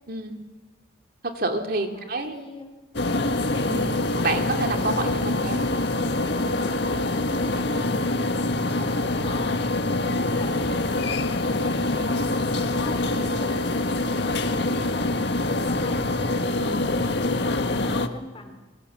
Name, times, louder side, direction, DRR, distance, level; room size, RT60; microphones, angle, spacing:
voice 1, 1.2-2.3 3.7-3.9 4.2-5.6 16.6-16.8, right 2 dB, 55° right, 4 dB, 2.8 m, -28 dB
voice 2, 1.9-2.7 6.8-11.0 11.4-14.0 14.4-16.3 16.7-18.6, left 1 dB, 30° left, 4 dB, 4.0 m, -43 dB
sound 1, 2.9-18.1, left 2 dB, 65° left, 1.8 m, -25 dB
28.0 x 23.5 x 7.5 m, 1.2 s
head